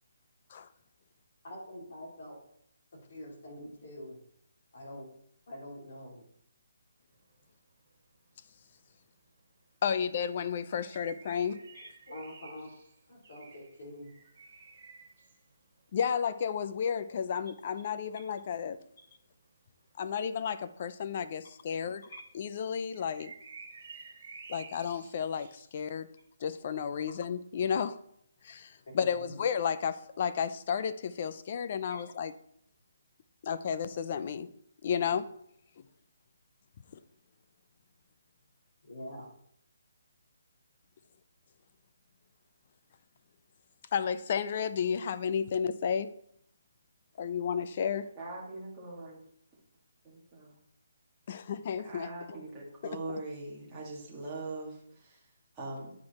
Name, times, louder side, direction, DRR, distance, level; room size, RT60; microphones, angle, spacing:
voice 1, 1.4-2.4 2.9-4.2 4.7-5.1 5.5-6.2 11.7-12.7 13.1-14.1 22.1-22.2 29.2-29.3 31.9-32.0 38.8-39.3 52.3-52.4, left 1 dB, 50° left, -4 dB, 3.7 m, -45 dB
sound 1, 7.1-7.7 8.0-8.1 8.3-20.5 20.9-21.5 21.8-21.9 22.0-25.6, right 5 dB, 45° right, 2.4 m, -53 dB
voice 2, 9.8-11.6 15.9-18.8 20.0-22.0 22.3-23.3 24.5-26.1 26.4-28.0 28.4-32.3 33.4-34.5 34.8-35.3 43.9-46.1 47.2-48.1 51.3-52.1, left 7 dB, 35° left, 13 dB, 0.5 m, -32 dB
voice 3, 48.2-49.2 49.5-49.6 50.0-50.6 51.3-56.1, right 2 dB, 10° right, -7 dB, 1.9 m, -42 dB
9.4 x 4.8 x 4.2 m, 0.70 s
hypercardioid pair, 170°, 0 cm